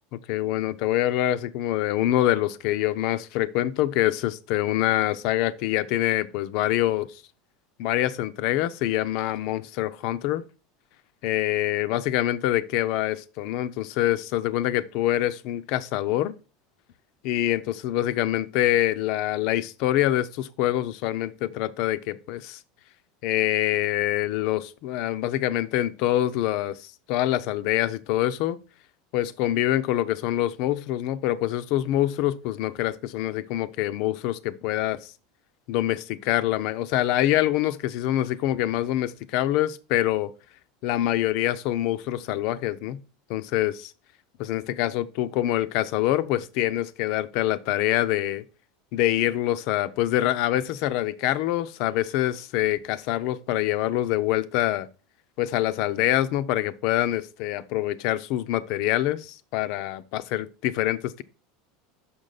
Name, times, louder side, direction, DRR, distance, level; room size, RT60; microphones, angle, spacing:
voice 1, 0.3-7.2 7.8-10.4 11.2-16.3 17.2-22.6 23.2-28.6 29.1-35.1 35.7-40.3 40.8-43.0 43.3-43.9 44.4-48.4 48.9-54.9 55.4-61.2, left 14 dB, 60° left, 0.4 m, -25 dB
5.8 x 5.2 x 3.9 m
supercardioid pair, 110°, 0 cm